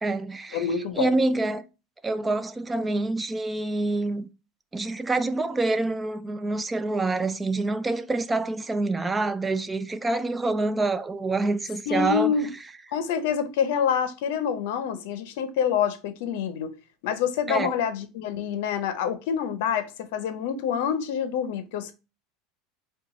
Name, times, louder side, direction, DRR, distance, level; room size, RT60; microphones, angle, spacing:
voice 1, 0.0-0.6 1.0-1.6 2.0-4.3 4.7-12.3 17.5-17.7, right 2 dB, 15° right, 0.4 m, -26 dB
voice 2, 0.5-1.1 11.9-12.5 12.9-16.7 17.0-21.9, left 7 dB, 75° left, 0.6 m, -27 dB
4.5 x 2.3 x 3.8 m
supercardioid pair, 100°, 0 cm